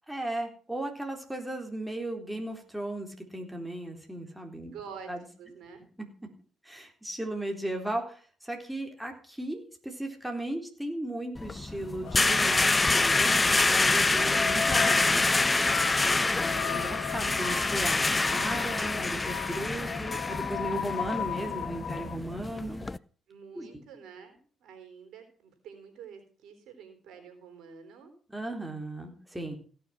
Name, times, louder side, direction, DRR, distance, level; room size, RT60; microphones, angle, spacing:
voice 1, 0.1-4.7 5.1-5.2 6.6-15.3 16.0-22.8 23.5-23.7 28.3-29.6, right 1 dB, 5° right, 3 dB, 3.9 m, -36 dB
voice 2, 4.6-5.1 5.4-5.9 23.3-28.1, right 6 dB, 75° right, 6 dB, 3.8 m, -48 dB
sound 1, 11.4-23.0, left 3 dB, 25° left, 0.6 m, -26 dB
sound 2, 12.0-22.2, left 8 dB, 75° left, 1.2 m, -37 dB
16.5 x 6.8 x 5.9 m, 0.43 s
supercardioid pair, 60°, 0 cm